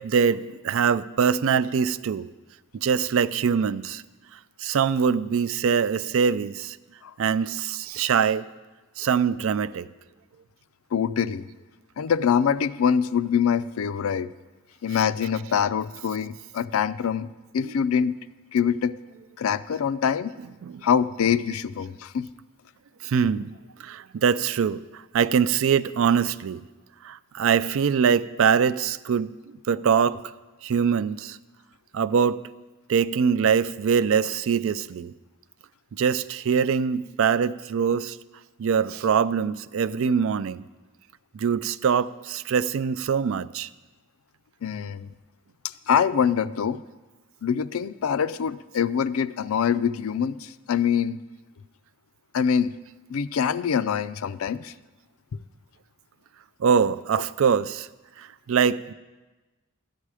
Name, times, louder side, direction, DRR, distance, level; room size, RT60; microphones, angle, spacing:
voice 1, 0.0-2.3 2.7-4.0 4.6-6.8 7.2-8.4 9.0-9.9 14.9-15.3 17.6-17.8 20.4-20.8 21.5-21.6 23.0-23.5 23.8-26.6 27.0-29.3 29.7-30.2 30.6-31.4 31.9-32.4 32.9-35.1 35.9-38.2 38.6-40.6 41.3-43.7 56.6-57.9 58.2-58.9, right 6 dB, 70° right, 16 dB, 0.4 m, -23 dB
voice 2, 10.9-11.5 12.0-14.3 14.8-17.3 17.5-18.2 18.5-18.9 19.4-20.3 20.8-22.3 44.6-45.1 45.9-46.8 47.4-51.2 52.3-52.7 53.1-54.7, left 7 dB, 85° left, 15 dB, 0.4 m, -24 dB
13.0 x 10.0 x 4.8 m, 1.2 s
head